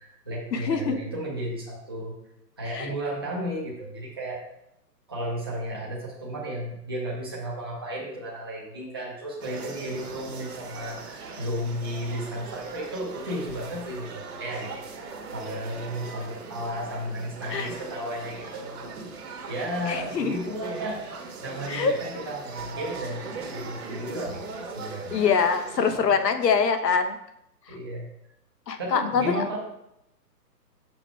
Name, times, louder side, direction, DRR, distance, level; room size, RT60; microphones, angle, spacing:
voice 1, 0.0-2.1 2.6-4.5 5.1-18.9 19.5-21.0 21.4-25.2 26.0-26.1 27.7-28.1 28.8-29.6, equal, 15° right, -5 dB, 0.5 m, -34 dB
voice 2, 0.5-1.0 2.7-2.9 17.5-17.7 19.9-20.3 21.7-21.9 25.1-27.2 28.7-29.4, left 6 dB, 75° left, 8 dB, 1.1 m, -24 dB
sound 1, 9.4-26.0, right 4 dB, 65° right, 1.3 m, -40 dB
5.9 x 5.9 x 4.4 m, 0.81 s
hypercardioid pair, 165°, 49 cm